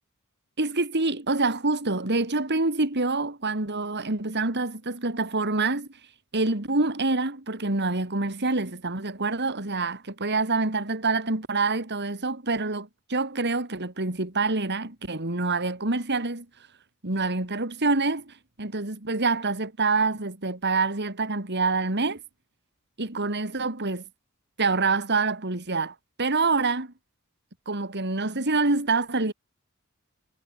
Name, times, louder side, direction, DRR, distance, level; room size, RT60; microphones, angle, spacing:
voice 1, 0.6-5.9 6.3-16.5 17.0-22.2 23.0-24.0 24.6-26.9 27.7-29.3, right 3 dB, 55° right, 3.1 m, -26 dB
head